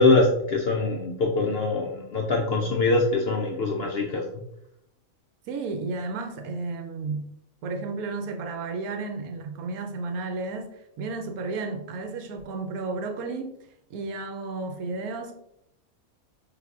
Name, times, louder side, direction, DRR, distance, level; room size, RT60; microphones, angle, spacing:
voice 1, 0.0-4.4, left 3 dB, 70° left, 0.6 m, -23 dB
voice 2, 5.5-7.3 7.6-13.6 13.9-15.4, right 3 dB, 85° right, 1.1 m, -33 dB
4.8 x 3.3 x 2.4 m
omnidirectional pair, 1.5 m